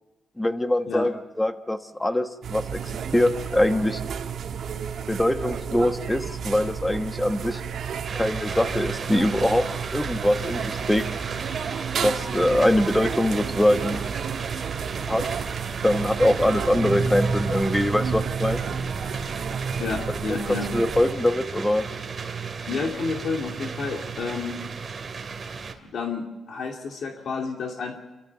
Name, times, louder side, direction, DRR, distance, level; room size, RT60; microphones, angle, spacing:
voice 1, 0.4-4.0 5.1-7.6 8.1-11.0 11.9-14.0 15.1-15.3 15.8-18.6 20.3-21.9, left 1 dB, 10° left, 9 dB, 1.2 m, -23 dB
sound 1, 2.4-21.1, right 7 dB, 70° right, 1.9 m, -32 dB
sound 2, 8.0-25.7, right 5 dB, 35° right, 2.5 m, -33 dB
voice 2, 19.8-20.7 22.7-24.6 25.8-28.0, left 4 dB, 70° left, 2 dB, 2.5 m, -30 dB
29.5 x 13.5 x 6.9 m, 1.2 s
cardioid pair, 125°, 0 cm